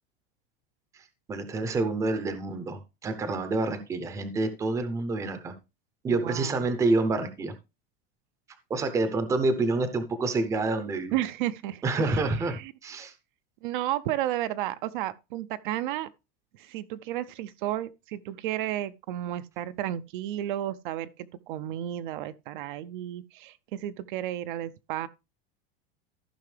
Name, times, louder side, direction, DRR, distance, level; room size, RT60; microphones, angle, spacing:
voice 1, 0.9-5.5 6.0-7.5 8.7-11.2 11.8-13.1, right 3 dB, 10° right, 0.6 m, -28 dB
voice 2, 6.1-6.7 11.1-12.7 13.6-16.1 16.6-21.1 21.5-25.1, right 13 dB, 55° right, 0.5 m, -32 dB
14.0 x 5.7 x 3.2 m
supercardioid pair, 175°, 30 cm